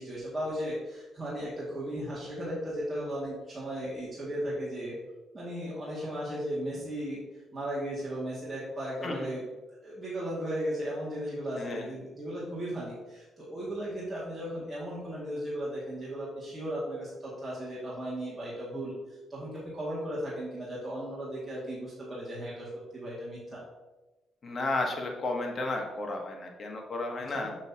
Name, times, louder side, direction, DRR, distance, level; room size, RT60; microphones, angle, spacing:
voice 1, 0.0-5.0 5.3-7.2 7.5-9.4 9.8-23.6 27.3-27.5, equal, 20° right, -7 dB, 2.0 m, -36 dB
voice 2, 11.6-11.9 24.4-27.5, left 2 dB, 40° left, 1 dB, 1.3 m, -33 dB
6.4 x 6.2 x 2.8 m, 1.1 s
cardioid pair, 90°, 0 cm